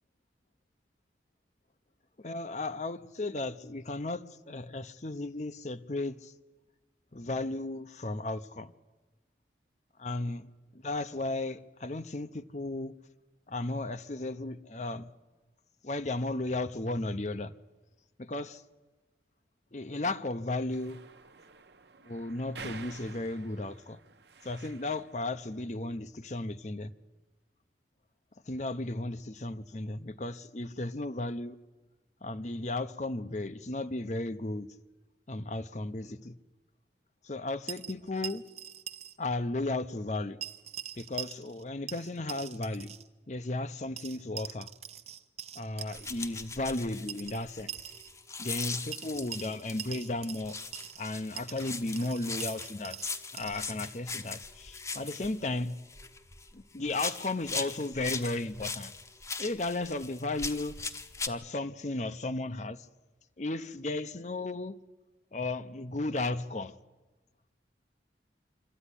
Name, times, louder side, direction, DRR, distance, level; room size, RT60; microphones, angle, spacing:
voice 1, 2.2-6.3 7.1-8.7 10.0-10.5 10.8-13.0 13.5-15.1 15.8-17.5 18.2-18.6 19.7-21.0 22.1-24.0 24.4-26.9 28.5-31.6 32.2-34.7 35.3-36.4 37.2-38.4 39.2-40.4 41.0-42.9 43.3-44.7 45.6-47.7 48.4-50.6 51.0-53.0 53.3-55.8 56.5-58.9 59.4-60.7 61.3-62.9 63.4-64.8 65.3-66.8, left 2 dB, 40° left, 0.8 m, -35 dB
sound 1, 20.7-25.2, right 5 dB, 70° right, 1.1 m, -50 dB
sound 2, 37.7-39.2 39.4-39.5 40.4-41.6 41.9-43.1 44.0-46.1 47.1-48.1 48.9-51.1 51.4-53.7, right 10 dB, 35° right, 0.8 m, -43 dB
sound 3, 45.9-49.9 50.4-56.5 56.9-61.3, left 4 dB, 15° left, 0.9 m, -39 dB
25.5 x 13.5 x 9.9 m
head